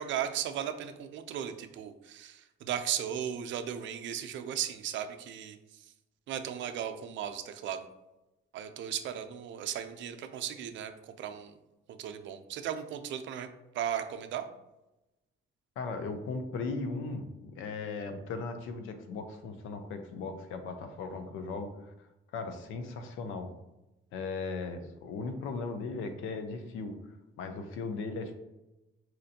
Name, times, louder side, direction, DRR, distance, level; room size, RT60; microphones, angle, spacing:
voice 1, 0.0-5.6 6.3-7.9 8.5-10.9 11.2-11.6 11.9-13.5 13.7-14.5, right 9 dB, 70° right, 7 dB, 0.4 m, -36 dB
voice 2, 15.8-21.9 22.3-23.5 24.1-27.0 27.4-28.4, left 4 dB, 90° left, 6 dB, 0.5 m, -37 dB
4.3 x 2.5 x 2.7 m, 0.97 s
cardioid pair, 90°, 20 cm